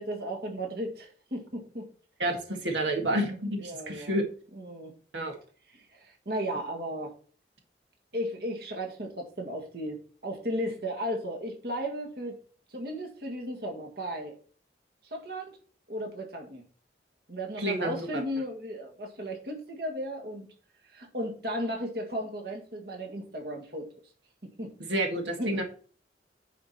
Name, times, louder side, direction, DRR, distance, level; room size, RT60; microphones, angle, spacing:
voice 1, 0.0-1.9 3.6-4.2 4.6-4.9 5.7-7.1 8.1-12.4 12.7-14.4 15.0-15.6 15.9-16.6 17.3-20.5 20.8-23.9 24.4-24.9 25.4-25.6, equal, 60° right, 2 dB, 1.9 m, -35 dB
voice 2, 2.2-4.2 5.1-5.4 17.6-18.2 24.9-25.6, right 1 dB, 85° right, 2 dB, 1.9 m, -29 dB
10.0 x 5.0 x 4.3 m, 0.41 s
head